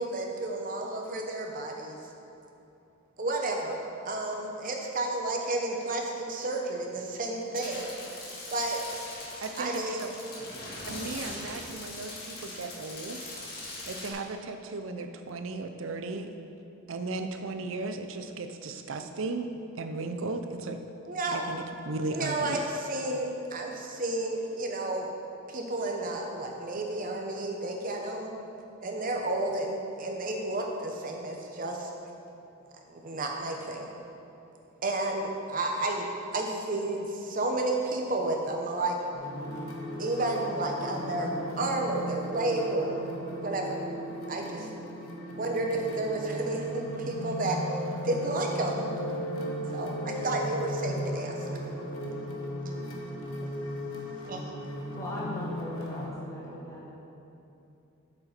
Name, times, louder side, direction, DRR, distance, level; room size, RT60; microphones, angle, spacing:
voice 1, 0.0-2.0 3.2-3.8 4.0-7.9 8.5-8.8 9.6-10.0 21.1-21.4 22.1-25.1 25.5-28.3 28.8-31.9 32.9-33.9 34.8-36.1 36.3-39.0 40.0-43.0 43.4-43.8 44.3-44.7 45.4-47.6 48.0-48.9 49.7-51.5 54.3-54.4, right 2 dB, 40° right, 1 dB, 0.9 m, -31 dB
sound 1, 7.5-14.1, left 2 dB, 50° left, 1.7 m, -41 dB
voice 2, 9.4-10.1 10.8-13.2 13.8-16.3 16.9-20.8 21.3-22.6, right 3 dB, 70° right, 7 dB, 0.5 m, -36 dB
sound 2, 39.1-56.1, equal, 85° left, 1.2 m, -36 dB
voice 3, 55.0-56.9, left 1 dB, 15° left, -6 dB, 1.5 m, -39 dB
7.8 x 6.7 x 4.4 m, 2.8 s
head